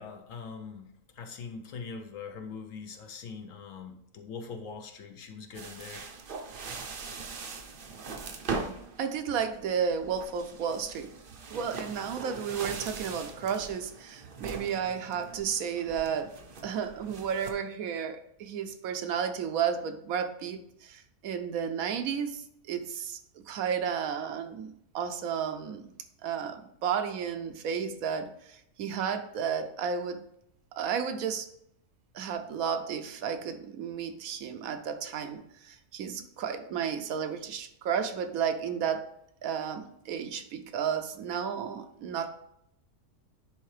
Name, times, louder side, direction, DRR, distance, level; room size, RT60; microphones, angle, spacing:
voice 1, 0.0-6.1 7.3-7.5 8.2-8.4, left 5 dB, 65° left, 5 dB, 1.0 m, -42 dB
sound 1, 5.5-17.5, right 4 dB, 50° right, 0.7 m, -41 dB
voice 2, 9.0-11.1 11.5-16.3 16.6-22.4 22.7-23.2 23.5-25.8 26.2-30.2 30.8-31.5 32.1-39.0 39.4-42.3, right 7 dB, 70° right, 8 dB, 1.0 m, -32 dB
10.0 x 3.5 x 3.2 m, 0.76 s
omnidirectional pair, 1.6 m